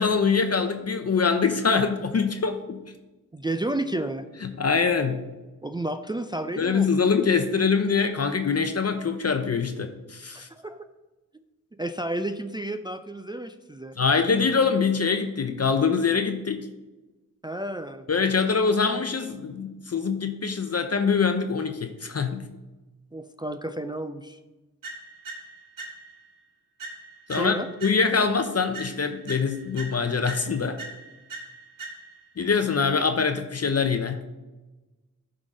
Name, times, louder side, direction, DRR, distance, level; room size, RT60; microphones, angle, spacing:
voice 1, 0.0-2.8 4.4-5.2 6.6-10.5 14.0-16.7 18.1-22.4 27.3-27.5 27.8-30.8 32.4-34.3, left 5 dB, 50° left, 7 dB, 0.6 m, -24 dB
voice 2, 3.3-4.3 5.6-7.0 10.3-10.9 11.8-14.0 17.4-18.1 23.1-24.4 27.3-27.7, right 1 dB, 15° right, 8 dB, 0.4 m, -31 dB
sound 1, 24.8-26.3 26.8-28.3 28.7-32.3, right 3 dB, 75° right, 1.8 m, -41 dB
10.5 x 3.9 x 4.9 m, 1.1 s
wide cardioid pair, 70°, 33 cm